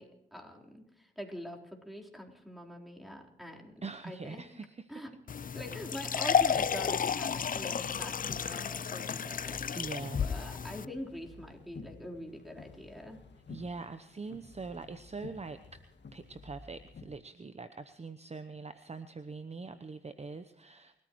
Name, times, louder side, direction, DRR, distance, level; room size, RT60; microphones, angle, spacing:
voice 1, 0.0-4.4 4.9-5.1 5.5-9.9 10.1-13.2, equal, ahead, 0 dB, 3.9 m, -44 dB
voice 2, 3.8-5.0 9.7-10.3 13.5-15.8 16.1-21.0, right 4 dB, 30° right, 10 dB, 0.9 m, -43 dB
sound 1, 5.3-10.9, left 7 dB, 45° left, 0.5 m, -32 dB
sound 2, 6.4-17.1, left 4 dB, 60° left, 2.1 m, -52 dB
28.5 x 14.0 x 3.1 m, 0.87 s
supercardioid pair, 45°, 20 cm